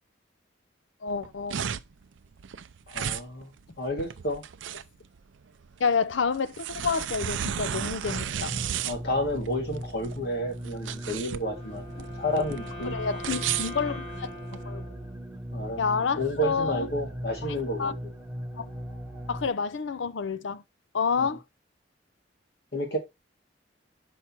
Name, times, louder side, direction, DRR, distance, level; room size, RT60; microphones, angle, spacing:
voice 1, 1.0-1.7 5.8-8.6 12.9-14.3 14.6-14.8 15.8-16.9 17.8-17.9 18.6-18.7 19.3-20.6 20.9-21.4, left 5 dB, 85° left, 0.6 m, -29 dB
sound 1, 1.1-14.6, right 9 dB, 90° right, 0.5 m, -34 dB
voice 2, 2.9-4.4 8.8-12.9 15.5-15.8 16.2-17.9 21.2-21.4 22.7-23.0, equal, 60° left, 2.2 m, -31 dB
sound 2, 8.0-19.5, equal, 5° right, 1.3 m, -39 dB
Wind instrument woodwind instrument, 11.3-15.6, left 1 dB, 30° left, 3.5 m, -42 dB
5.9 x 5.4 x 4.5 m
head